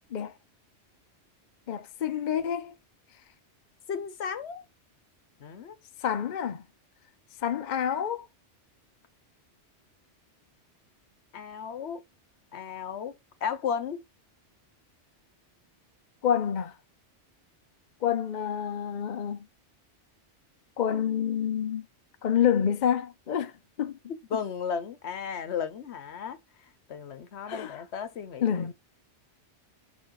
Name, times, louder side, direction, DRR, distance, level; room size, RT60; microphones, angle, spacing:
voice 1, 1.7-2.8 6.0-6.6 7.4-8.3 16.2-16.7 18.0-19.5 20.8-21.9 22.2-23.5 23.8-24.0 27.5-27.8 28.4-28.7, left 9 dB, 50° left, 0.7 m, -28 dB
voice 2, 3.9-4.6 5.4-5.8 11.3-12.0 12.5-13.1 13.4-14.0 24.1-26.4 26.9-28.7, left 7 dB, 65° left, 1.1 m, -34 dB
5.5 x 4.1 x 4.6 m
omnidirectional pair, 1.2 m